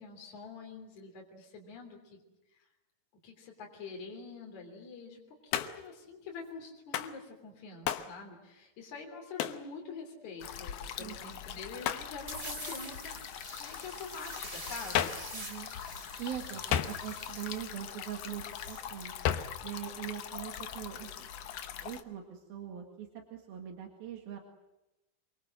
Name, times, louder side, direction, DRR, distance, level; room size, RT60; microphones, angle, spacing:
voice 1, 0.0-2.2 2.5-2.7 3.2-15.2, left 4 dB, 50° left, 0 dB, 4.5 m, -46 dB
Hands, 5.5-5.9 6.9-7.2 7.9-8.1 9.4-9.7 11.8-12.1 14.9-15.3 16.7-17.3 19.2-19.6, left 10 dB, 85° left, 3.0 m, -32 dB
sound 1, 10.4-22.0, left 9 dB, 70° left, 1.5 m, -43 dB
sound 2, 12.3-18.9, right 1 dB, 15° right, 3.8 m, -46 dB
voice 2, 15.3-15.7 16.2-19.2 19.6-21.3 21.8-24.4, right 10 dB, 80° right, 3 dB, 3.8 m, -42 dB
26.0 x 24.0 x 7.7 m, 0.97 s
omnidirectional pair, 4.2 m